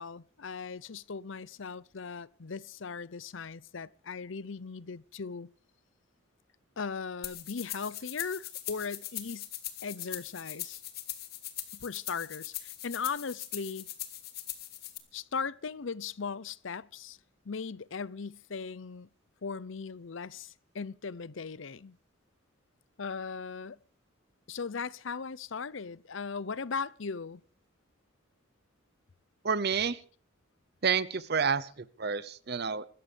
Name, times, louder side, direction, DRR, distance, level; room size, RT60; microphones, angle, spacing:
voice 1, 0.0-5.5 6.8-9.5 9.8-10.8 11.7-13.9 15.1-17.2 17.4-19.1 19.4-22.0 23.0-23.8 24.5-27.4, left 5 dB, 65° left, 0.7 m, -38 dB
sound 1, 7.2-15.0, left 13 dB, 50° left, 2.1 m, -41 dB
voice 2, 29.4-30.0 30.8-32.8, right 6 dB, 50° right, 0.7 m, -29 dB
25.5 x 14.0 x 3.4 m
head